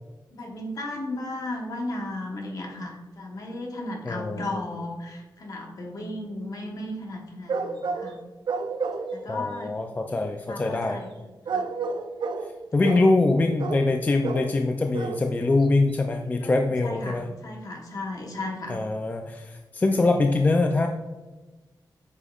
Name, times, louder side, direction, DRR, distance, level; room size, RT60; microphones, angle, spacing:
voice 1, 0.3-8.2 9.1-9.7 10.1-11.1 11.5-11.7 16.3-18.8, left 2 dB, 50° left, 1 dB, 1.1 m, -35 dB
voice 2, 4.0-4.6 9.3-11.0 12.7-17.3 18.7-20.9, left 2 dB, 20° left, 4 dB, 0.3 m, -23 dB
sound 1, 7.5-8.1 8.5-9.2 11.5-12.5 12.8-13.1 13.6-13.9 14.2-14.5 14.9-15.3 15.6-15.7 15.9-16.0, right 4 dB, 80° right, 0.5 m, -30 dB
8.3 x 5.2 x 2.4 m, 1.2 s
wide cardioid pair, 170°, 8 cm